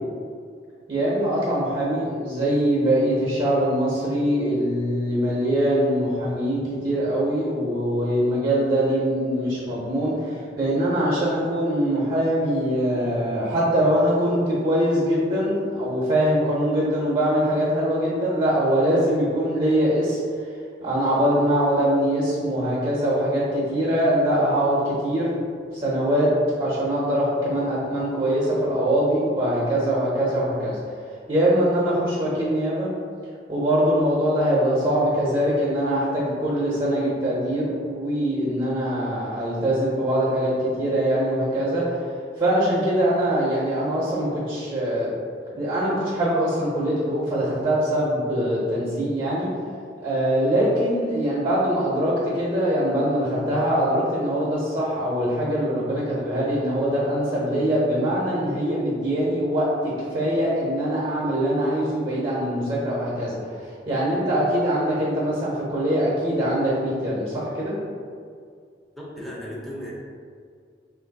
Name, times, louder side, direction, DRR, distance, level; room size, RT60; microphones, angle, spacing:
voice 1, 0.9-20.2 20.8-25.3 25.8-26.3 26.6-30.8 31.3-32.9 33.5-42.0 42.4-45.1 45.6-49.5 50.0-67.8, equal, 30° right, -6 dB, 0.8 m, -23 dB
voice 2, 68.9-69.9, equal, ahead, -6 dB, 0.7 m, -35 dB
3.0 x 2.5 x 4.0 m, 2.2 s
head